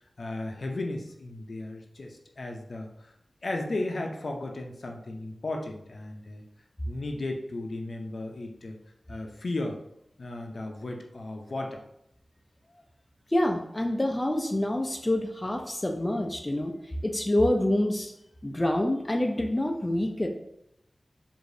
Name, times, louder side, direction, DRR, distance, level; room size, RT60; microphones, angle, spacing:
voice 1, 0.2-3.1 3.4-6.4 6.8-8.8 9.1-9.8 10.2-11.8, left 2 dB, 70° left, 2 dB, 0.5 m, -35 dB
voice 2, 13.3-16.7 17.0-18.1 18.4-20.3, left 1 dB, 20° left, 2 dB, 0.4 m, -27 dB
4.8 x 2.6 x 2.6 m, 0.79 s
wide cardioid pair, 90°, 0 cm